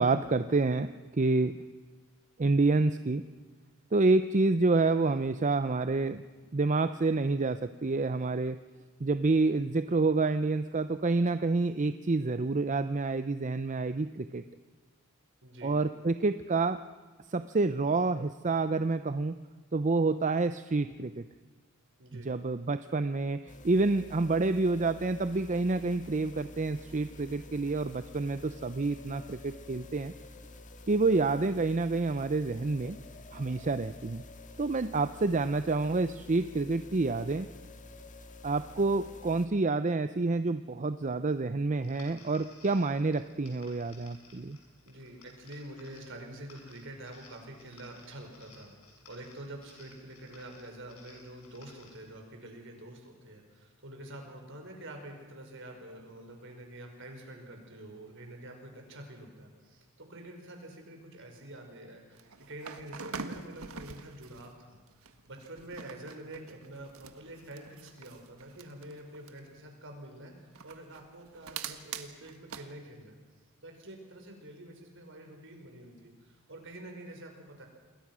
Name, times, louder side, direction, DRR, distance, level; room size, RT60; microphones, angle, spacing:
voice 1, 0.0-1.6 2.4-3.2 3.9-6.2 6.5-8.6 9.0-14.4 15.6-16.8 17.3-19.3 19.7-21.3 22.3-30.1 30.9-33.0 33.3-34.2 34.6-37.5 38.4-44.6, right 3 dB, 35° right, 11 dB, 0.6 m, -28 dB
voice 2, 15.4-15.7 22.0-22.3 44.8-48.7 49.1-73.2 73.6-77.7, right 1 dB, 60° right, 3 dB, 5.4 m, -47 dB
sound 1, 23.5-39.5, left 2 dB, 35° left, 1.8 m, -49 dB
sound 2, 41.8-52.1, left 3 dB, 80° left, 7.1 m, -58 dB
sound 3, 62.1-64.5 64.9-69.5 70.5-72.7, right 5 dB, 75° right, 1.6 m, -45 dB
28.0 x 21.0 x 6.2 m, 1.4 s
head